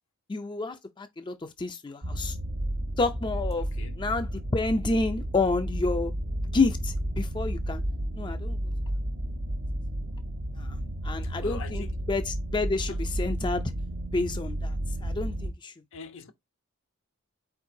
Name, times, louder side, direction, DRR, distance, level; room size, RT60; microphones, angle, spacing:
voice 1, 0.3-2.4 3.0-3.7 4.0-6.1 6.5-7.8 8.1-8.6 10.6-10.8 11.0-13.6 14.1-14.8 15.0-15.7, left 3 dB, 20° left, 0.5 m, -29 dB
sound 1, 2.0-15.5, right 1 dB, 60° right, 1.0 m, -32 dB
voice 2, 3.6-4.0 11.2-12.1 12.8-13.1 15.9-16.3, left 4 dB, 65° left, 0.9 m, -43 dB
4.5 x 4.4 x 2.6 m
head